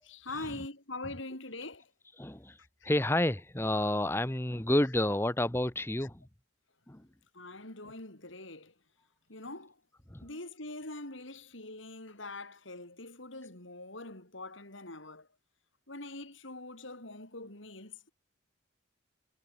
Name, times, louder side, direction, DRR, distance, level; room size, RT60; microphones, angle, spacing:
voice 1, 0.0-1.9 2.6-2.9 7.3-8.7 9.3-9.8 10.2-15.3 15.9-18.1, left 2 dB, 75° left, 5.8 m, -44 dB
voice 2, 2.2-2.6 2.8-6.2 6.9-7.0 10.1-10.2, left 1 dB, 10° left, 0.9 m, -29 dB
head